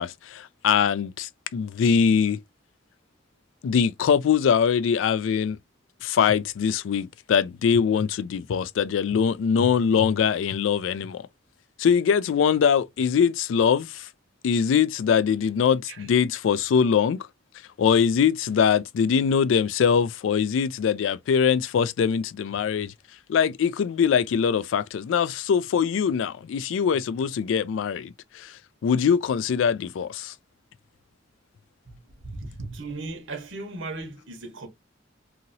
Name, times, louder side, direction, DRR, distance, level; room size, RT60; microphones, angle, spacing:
voice 1, 0.0-2.4 3.6-5.6 6.0-11.3 11.8-14.1 14.4-17.3 17.8-22.9 23.3-30.3, left 7 dB, 90° left, 0.3 m, -22 dB
voice 2, 32.2-34.7, right 2 dB, 90° right, 1.1 m, -36 dB
2.9 x 2.8 x 2.6 m
head